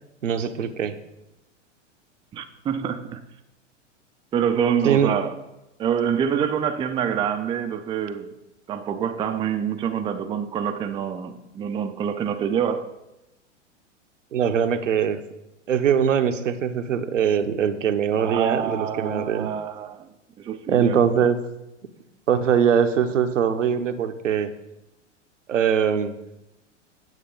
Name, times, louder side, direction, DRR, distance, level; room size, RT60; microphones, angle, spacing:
voice 1, 0.2-0.9 4.8-5.1 14.3-15.2 15.7-19.5 20.7-21.4 22.3-24.5 25.5-26.1, right 8 dB, 85° right, 0.9 m, -22 dB
voice 2, 2.3-3.2 4.3-5.3 5.8-8.3 8.7-12.9 18.2-20.1 20.4-21.3, right 8 dB, 15° right, 0.4 m, -26 dB
9.3 x 7.9 x 3.9 m
hypercardioid pair, 105°, 37 cm